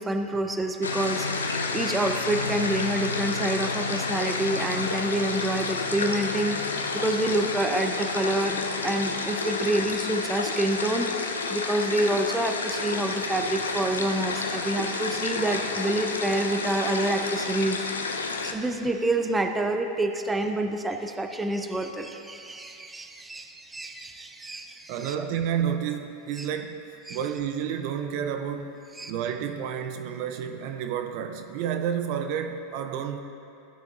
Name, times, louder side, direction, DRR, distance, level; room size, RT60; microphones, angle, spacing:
voice 1, 0.0-11.1 11.5-17.8 18.3-25.1 26.4-26.5 27.1-27.2 29.0-29.1, right 1 dB, 15° right, 5 dB, 0.6 m, -28 dB
sound 1, 0.8-18.5, left 4 dB, 85° left, 0.6 m, -30 dB
voice 2, 24.9-28.8 29.1-33.2, right 8 dB, 55° right, 7 dB, 0.5 m, -30 dB
14.5 x 6.5 x 2.5 m, 2.7 s
hypercardioid pair, 95°, 0 cm